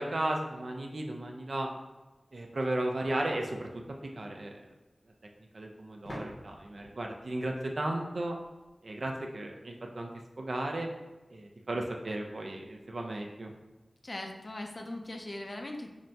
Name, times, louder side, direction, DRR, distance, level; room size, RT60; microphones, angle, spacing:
voice 1, 0.0-1.7 2.3-3.7 4.0-4.6 5.5-8.4 8.8-10.1 10.4-10.9 11.3-13.5, right 1 dB, 65° right, 1 dB, 0.5 m, -35 dB
sound 1, 6.0-8.7, equal, 65° left, 0.9 m, -48 dB
voice 2, 14.0-15.9, left 1 dB, 45° left, 2 dB, 0.5 m, -40 dB
5.8 x 2.1 x 2.6 m, 1.1 s
wide cardioid pair, 80°, 0 cm